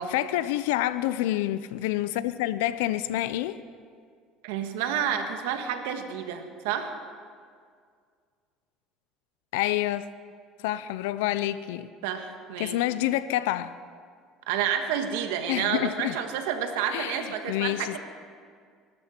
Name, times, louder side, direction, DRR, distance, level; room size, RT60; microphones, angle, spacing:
voice 1, 0.0-3.6 9.5-10.1 10.6-11.9 12.6-13.7 15.5-16.2 16.9-18.0, left 14 dB, 90° left, 14 dB, 0.5 m, -28 dB
voice 2, 4.4-6.9 12.0-12.8 14.5-18.0, right 8 dB, 90° right, 6 dB, 1.5 m, -30 dB
24.0 x 13.0 x 4.4 m, 2.1 s
supercardioid pair, 100°, 0 cm